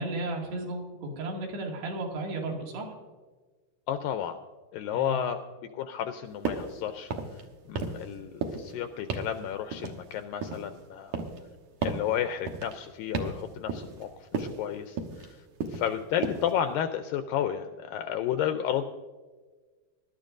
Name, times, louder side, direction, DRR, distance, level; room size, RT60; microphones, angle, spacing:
voice 1, 0.0-2.9 4.9-5.3, right 2 dB, 90° right, 0 dB, 4.3 m, -34 dB
voice 2, 3.9-4.4 4.7-5.4 5.7-7.1 7.7-11.2 11.8-15.4 15.7-18.8, left 10 dB, 85° left, 8 dB, 2.0 m, -32 dB
sound 1, 6.5-6.7 7.0-7.4 7.8-8.1 8.4-8.7 9.1-9.4 9.7-10.7 11.1-11.5 11.8-12.1 12.5-12.8 13.1-13.4 13.7-14.0 14.3-14.6 15.0-15.3 15.6-15.9 16.2-16.5, right 4 dB, 65° right, 2.0 m, -33 dB
22.5 x 12.0 x 2.5 m, 1.4 s
omnidirectional pair, 4.6 m